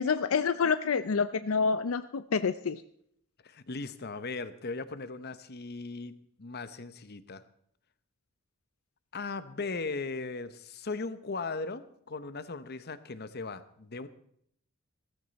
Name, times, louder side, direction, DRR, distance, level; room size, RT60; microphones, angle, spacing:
voice 1, 0.0-2.8, left 5 dB, 75° left, 13 dB, 0.5 m, -28 dB
voice 2, 3.4-7.4 9.1-14.1, left 3 dB, 50° left, 13 dB, 0.9 m, -38 dB
16.0 x 14.5 x 4.1 m, 0.69 s
head